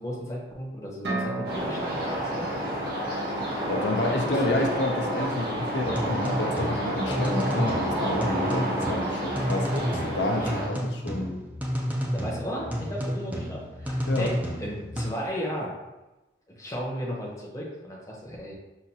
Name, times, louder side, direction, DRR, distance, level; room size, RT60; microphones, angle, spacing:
voice 1, 0.0-2.5 4.2-4.5 10.4-10.6 12.1-15.7 16.5-18.5, equal, 20° left, -4 dB, 0.7 m, -35 dB
sound 1, 1.0-4.8, right 2 dB, 85° right, 0.9 m, -37 dB
sound 2, 1.4-10.7, right 1 dB, 55° right, 1.3 m, -30 dB
voice 2, 3.7-11.4 14.1-14.3, left 1 dB, 80° left, 2 dB, 0.5 m, -29 dB
sound 3, 5.8-15.1, equal, 10° right, 0.4 m, -31 dB
5.7 x 2.5 x 2.7 m, 1.1 s
head